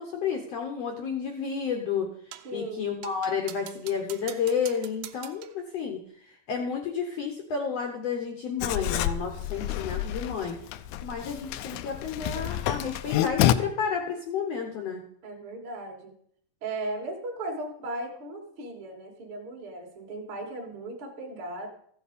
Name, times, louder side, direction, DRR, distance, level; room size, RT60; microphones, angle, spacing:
voice 1, 0.0-2.1 2.5-10.6 11.0-15.0, left 6 dB, 70° left, 3 dB, 1.5 m, -31 dB
sound 1, 2.3-2.6 3.0-5.6, right 13 dB, 85° right, 2.4 m, -45 dB
voice 2, 2.4-3.0 15.2-16.1 16.6-21.7, right 2 dB, 45° right, -1 dB, 2.0 m, -37 dB
Writing, 8.6-13.5, left 12 dB, 85° left, 1.7 m, -28 dB
14.5 x 7.0 x 5.0 m, 0.65 s
omnidirectional pair, 4.0 m